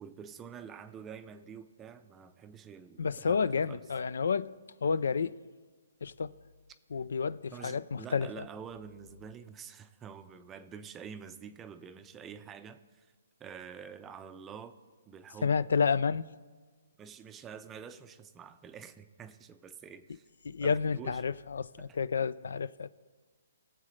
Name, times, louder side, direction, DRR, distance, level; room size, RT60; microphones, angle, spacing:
voice 1, 0.0-3.8 7.5-13.1 13.4-14.8 15.1-15.6 17.0-20.2 20.6-21.2 21.8-21.9, right 7 dB, 15° right, 0.5 m, -47 dB
voice 2, 3.0-4.5 4.8-5.3 6.0-6.3 6.9-8.5 15.4-16.2 20.5-22.9, left 5 dB, 75° left, 0.4 m, -30 dB
22.0 x 7.5 x 3.2 m
hypercardioid pair, 160°, 0 cm